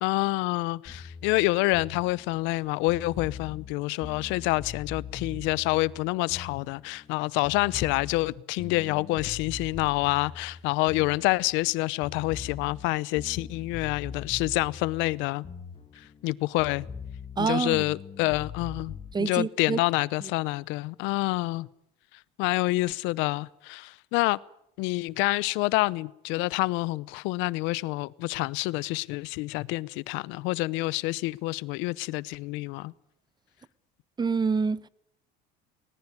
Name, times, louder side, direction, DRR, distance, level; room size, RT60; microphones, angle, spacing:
voice 1, 0.0-15.4 16.2-16.9 17.4-21.7 22.4-24.4 24.8-32.9, left 21 dB, 80° left, 0.9 m, -27 dB
sound 1, 0.9-7.2 7.4-11.7 12.0-16.3 16.6-19.1, left 5 dB, 30° left, 2.5 m, -42 dB
voice 2, 17.4-17.9 19.1-19.8 20.2-20.3 34.2-34.9, right 5 dB, 20° right, 0.9 m, -27 dB
20.0 x 20.0 x 9.6 m
supercardioid pair, 95°, 19 cm